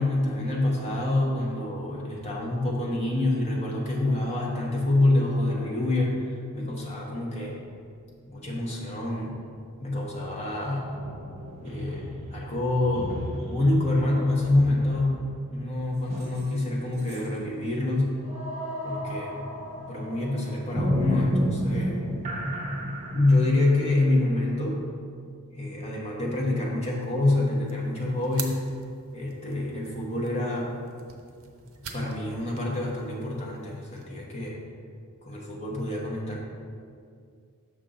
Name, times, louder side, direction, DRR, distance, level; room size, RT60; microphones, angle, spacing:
voice 1, 0.0-7.6 8.3-9.4 9.8-10.9 11.6-15.2 15.5-18.2 18.8-19.5 19.9-22.0 23.1-24.8 25.5-28.6 29.1-30.8 31.9-34.6 35.2-36.4, left 2 dB, 30° left, -3 dB, 1.1 m, -26 dB
sound 1, 10.9-16.7 17.0-17.3 18.2-24.9, equal, 30° right, 0.9 m, -32 dB
sound 2, 27.6-34.1, right 6 dB, 65° right, 0.7 m, -45 dB
6.5 x 5.5 x 3.7 m, 2.3 s
head